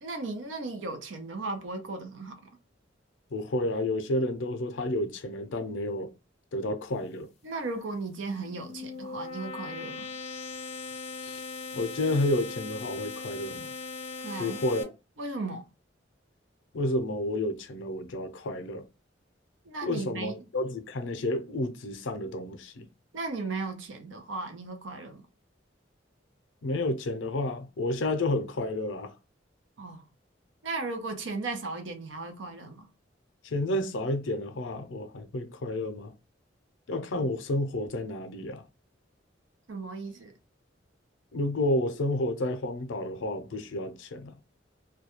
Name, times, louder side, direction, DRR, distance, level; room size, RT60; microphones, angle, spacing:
voice 1, 0.0-2.4 7.4-10.1 14.2-14.6 15.2-15.7 19.7-20.4 23.1-25.2 29.8-30.0 30.6-32.9 39.7-40.3, right 3 dB, 85° right, 0.6 m, -36 dB
voice 2, 3.3-6.1 6.5-7.3 11.2-11.4 11.7-13.7 14.4-14.9 16.7-18.8 19.8-22.9 26.6-29.1 33.4-36.1 36.9-38.6 41.3-44.3, left 1 dB, 90° left, 0.5 m, -30 dB
sound 1, 8.3-14.8, left 4 dB, 35° left, 0.4 m, -39 dB
2.3 x 2.1 x 2.9 m
head